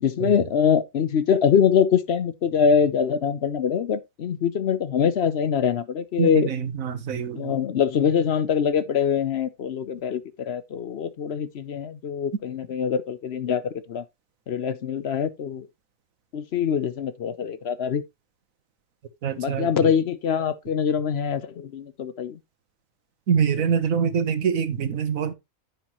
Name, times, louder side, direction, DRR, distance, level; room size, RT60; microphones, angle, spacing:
voice 1, 0.0-6.5 7.4-14.0 14.5-15.7 16.3-18.0 19.4-22.4, left 7 dB, 60° left, 0.9 m, -24 dB
voice 2, 6.2-7.5 19.2-19.9 23.3-25.3, right 7 dB, 90° right, 1.5 m, -25 dB
9.8 x 7.0 x 3.0 m
omnidirectional pair, 1.4 m